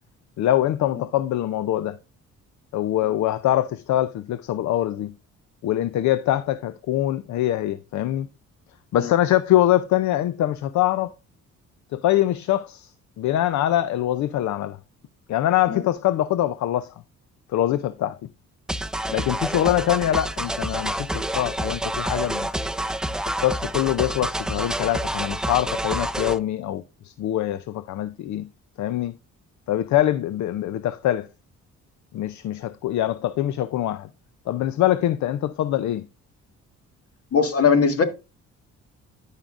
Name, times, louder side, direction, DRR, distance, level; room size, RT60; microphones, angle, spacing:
voice 1, 0.4-2.0 2.7-5.1 5.6-8.3 8.9-11.1 11.9-12.9 13.2-14.8 15.3-16.9 17.5-18.2 19.1-22.5 23.4-28.5 28.8-29.1 29.7-31.3 32.1-34.1 34.5-36.0, left 13 dB, 70° left, 0.5 m, -23 dB
sound 1, 18.7-26.4, right 1 dB, ahead, 0.4 m, -28 dB
voice 2, 37.3-38.0, left 5 dB, 50° left, 1.7 m, -20 dB
12.5 x 5.7 x 2.5 m
cardioid pair, 90°, 30 cm